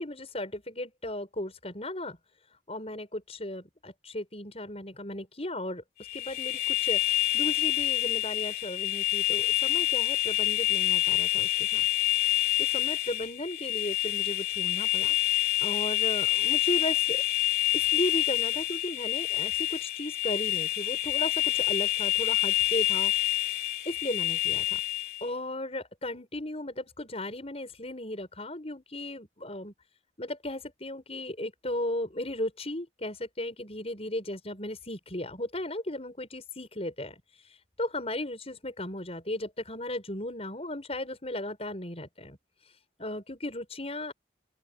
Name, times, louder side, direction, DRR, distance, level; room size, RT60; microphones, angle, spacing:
voice 1, 0.0-2.2 2.7-5.8 6.1-7.1 7.3-11.8 12.6-15.1 15.6-17.2 17.7-23.1 23.8-24.8 25.2-29.7 30.2-37.2 37.8-42.4 43.0-44.1, left 1 dB, 35° left, 6.9 m, -36 dB
sound 1, 6.0-25.3, left 14 dB, 55° left, 3.8 m, -27 dB
open air
head